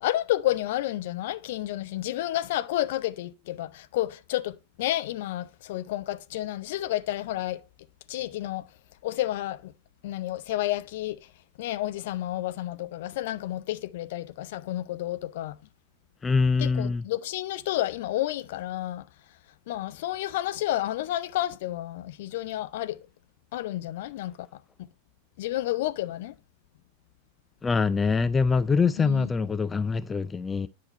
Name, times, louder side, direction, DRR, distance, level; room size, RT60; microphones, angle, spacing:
voice 1, 0.0-7.6 8.1-8.6 9.0-9.7 10.0-11.2 11.6-15.6 16.6-19.0 19.7-23.0 23.5-24.5 25.4-26.3 29.0-29.3, left 14 dB, 55° left, 0.7 m, -30 dB
voice 2, 16.2-17.0 27.6-30.7, left 4 dB, 15° left, 0.4 m, -24 dB
10.5 x 5.8 x 4.3 m
figure-of-eight pair, 90°, 0 cm